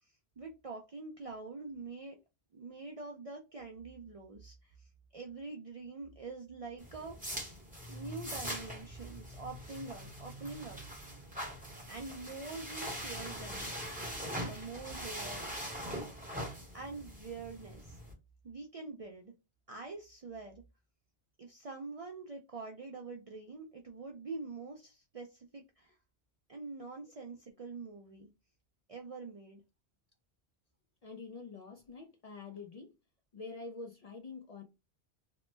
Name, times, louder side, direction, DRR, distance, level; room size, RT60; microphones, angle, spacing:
voice 1, 0.0-2.2 2.5-7.4 7.9-10.8 11.9-13.7 14.1-15.4 16.7-18.0 18.4-19.3 19.7-20.6 21.4-26.0 26.5-28.3 28.9-29.6, right 3 dB, 55° right, 0.4 m, -45 dB
sound 1, 6.8-18.1, equal, 10° right, 0.8 m, -42 dB
voice 2, 31.0-32.9 33.3-34.6, left 4 dB, 50° left, 0.5 m, -46 dB
3.0 x 2.0 x 3.1 m
omnidirectional pair, 1.1 m